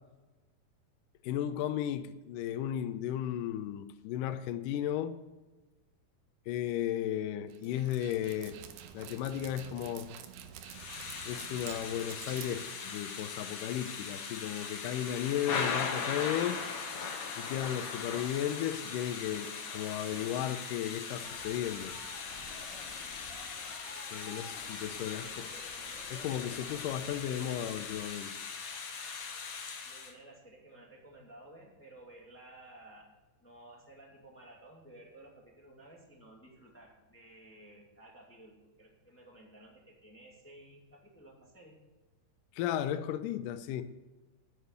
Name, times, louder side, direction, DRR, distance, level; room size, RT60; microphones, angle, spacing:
voice 1, 1.2-5.1 6.5-8.6 8.9-10.1 11.3-16.6 17.4-22.0 24.1-25.4 26.1-28.4 42.5-43.8, left 11 dB, 85° left, 1.9 m, -35 dB
Dog, 7.5-13.3, right 9 dB, 85° right, 2.8 m, -49 dB
Thunder / Rain, 10.6-30.1, left 5 dB, 65° left, 1.4 m, -40 dB
sound 1, 21.2-28.0, left 1 dB, 30° left, 3.2 m, -52 dB
voice 2, 24.9-25.4 27.3-27.5 29.8-33.1 33.4-38.5 38.8-41.8, right 1 dB, 10° left, 0.8 m, -55 dB
9.7 x 7.9 x 9.4 m
omnidirectional pair, 4.7 m